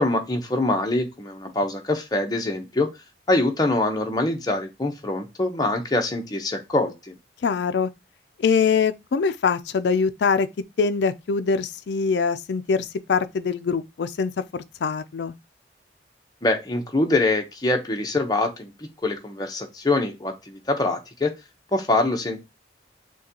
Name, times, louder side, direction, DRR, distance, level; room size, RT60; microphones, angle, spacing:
voice 1, 0.0-2.9 3.3-7.1 16.4-21.3 21.7-22.4, left 2 dB, 20° left, 0.7 m, -24 dB
voice 2, 7.4-7.9 8.4-10.5 10.8-15.3, left 5 dB, 70° left, 0.4 m, -23 dB
6.3 x 2.3 x 2.8 m
head